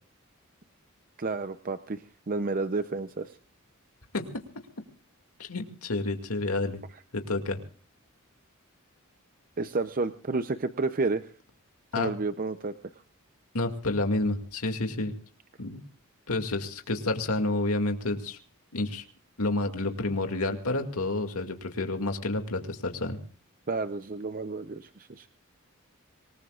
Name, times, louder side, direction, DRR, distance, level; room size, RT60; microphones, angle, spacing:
voice 1, 1.2-3.4 9.6-11.3 12.0-12.7 23.7-25.3, right 3 dB, 40° right, 10 dB, 0.6 m, -31 dB
voice 2, 5.4-6.8 7.1-7.6 11.9-12.1 13.5-15.1 15.6-15.8 16.3-18.4 18.7-19.0 19.4-23.2, left 2 dB, 80° left, 5 dB, 2.3 m, -29 dB
26.5 x 19.0 x 2.4 m, 0.41 s
head